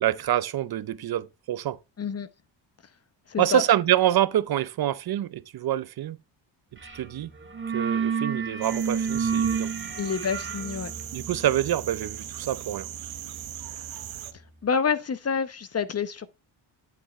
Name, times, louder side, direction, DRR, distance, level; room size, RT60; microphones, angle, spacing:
voice 1, 0.0-1.8 3.4-6.2 6.9-7.3 7.7-9.7 11.1-12.9, right 12 dB, 55° right, 0.8 m, -26 dB
voice 2, 3.3-3.6 10.0-10.9 14.6-16.3, left 6 dB, 35° left, 0.9 m, -28 dB
sound 1, 6.8-7.1 7.3-14.0, right 6 dB, 25° right, 1.6 m, -31 dB
sound 2, 8.6-14.3, right 13 dB, 85° right, 1.2 m, -39 dB
9.0 x 7.7 x 3.1 m
cardioid pair, 95°, 46 cm